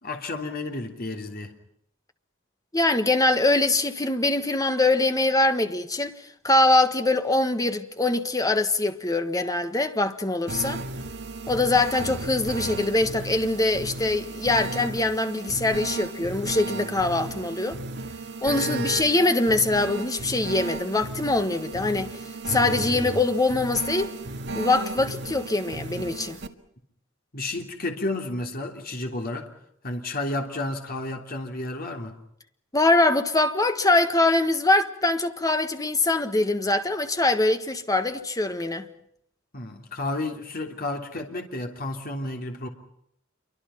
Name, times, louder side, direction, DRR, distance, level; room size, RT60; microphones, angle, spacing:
voice 1, 0.0-1.5 18.6-18.9 27.3-29.5 29.8-32.2 39.5-42.7, left 2 dB, 45° left, 3.2 m, -31 dB
voice 2, 2.7-6.1 6.4-10.8 11.5-17.8 18.4-22.1 22.5-24.1 24.5-26.4 32.7-38.9, left 2 dB, 20° left, 1.6 m, -23 dB
sound 1, 10.5-26.5, right 2 dB, 60° right, 1.8 m, -34 dB
28.0 x 24.0 x 5.8 m
head